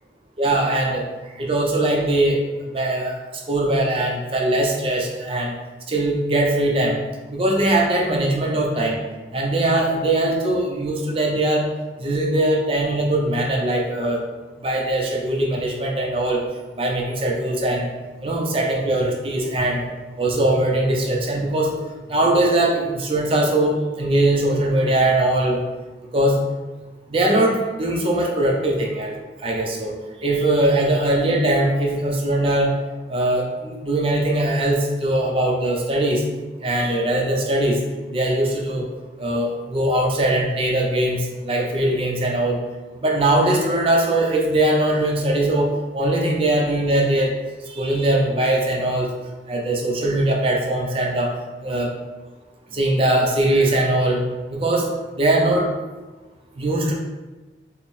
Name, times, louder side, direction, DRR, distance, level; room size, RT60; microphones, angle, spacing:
voice 1, 0.4-1.0 1.4-2.4 2.7-3.2 3.5-5.6 5.9-7.0 7.3-9.0 9.3-11.7 12.0-14.2 14.6-16.4 16.8-17.9 18.2-19.9 20.2-21.7 22.1-25.6 26.1-26.4 27.1-29.9 30.2-32.7 33.1-36.2 36.6-37.8 38.1-38.9 39.2-42.6 42.9-45.7 45.9-47.3 47.7-49.1 49.5-51.3 51.6-51.9 52.7-54.2 54.5-54.9 55.2-55.7 56.6-56.9, right 1 dB, 30° right, 0 dB, 0.5 m, -21 dB
4.2 x 2.0 x 3.5 m, 1.2 s
head